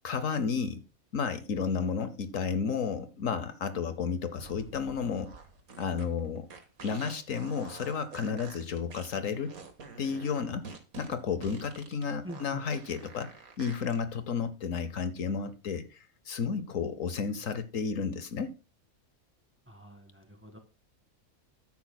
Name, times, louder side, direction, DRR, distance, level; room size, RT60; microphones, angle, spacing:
voice 1, 0.0-0.8 1.1-5.3 5.8-6.5 6.8-9.6 10.0-10.7 11.0-13.3 13.6-18.5, left 6 dB, 70° left, 1.2 m, -32 dB
sound 1, 4.3-14.0, right 4 dB, 80° right, 2.1 m, -48 dB
voice 2, 12.2-12.6 19.7-20.6, right 1 dB, 10° right, 1.8 m, -45 dB
13.0 x 10.0 x 2.3 m
omnidirectional pair, 1.5 m